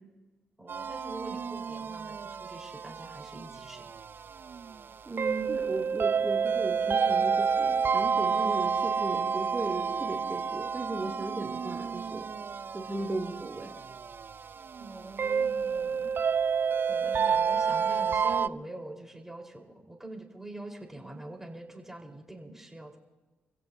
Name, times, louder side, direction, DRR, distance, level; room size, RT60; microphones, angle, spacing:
voice 1, 0.6-3.9 14.8-16.1 16.9-23.0, right 2 dB, 10° right, 1 dB, 4.3 m, -44 dB
sound 1, 0.7-18.5, right 6 dB, 50° right, 0.4 m, -30 dB
voice 2, 5.1-12.3 12.7-13.7, right 2 dB, 30° right, -1 dB, 2.8 m, -36 dB
26.5 x 16.5 x 2.8 m, 1.2 s
supercardioid pair, 50°, 5 cm